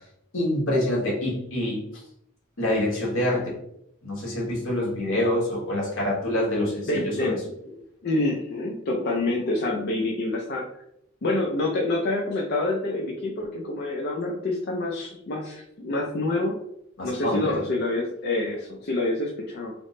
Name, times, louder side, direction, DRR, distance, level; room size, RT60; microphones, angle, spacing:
voice 1, 0.3-1.9 2.6-3.6 4.0-7.4 17.0-17.6, left 1 dB, 70° left, -4 dB, 1.4 m, -26 dB
voice 2, 6.6-7.4 7.7-7.8 8.0-10.7 11.2-16.6 17.0-19.7, left 2 dB, 50° left, -1 dB, 0.5 m, -27 dB
3.4 x 2.1 x 3.7 m, 0.77 s
head